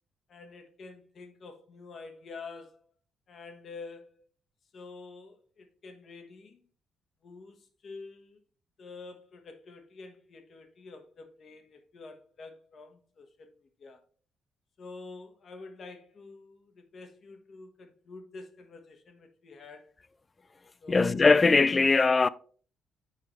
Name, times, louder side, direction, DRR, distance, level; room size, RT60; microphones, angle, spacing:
voice 1, 0.3-2.9 3.3-4.2 4.7-6.6 7.2-8.4 8.8-14.0 14.8-19.9 20.8-21.2, left 3 dB, 50° left, 1.2 m, -48 dB
voice 2, 20.9-22.3, left 4 dB, 30° left, 0.3 m, -21 dB
8.6 x 4.7 x 3.1 m
cardioid pair, 90°, 0 cm